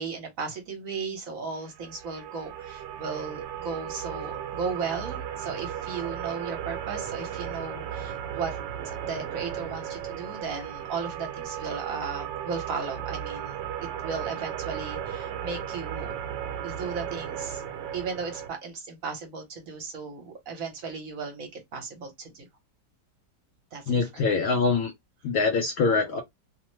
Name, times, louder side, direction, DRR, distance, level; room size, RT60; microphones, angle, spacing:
voice 1, 0.0-8.6 9.0-13.5 14.0-16.1 16.6-17.6 17.9-22.5 23.7-24.1, right 5 dB, 55° right, 1.2 m, -35 dB
sound 1, 1.7-18.5, right 9 dB, 80° right, 1.2 m, -35 dB
voice 2, 23.9-24.9 25.2-26.2, left 4 dB, 70° left, 0.9 m, -24 dB
3.1 x 2.0 x 3.0 m
omnidirectional pair, 1.9 m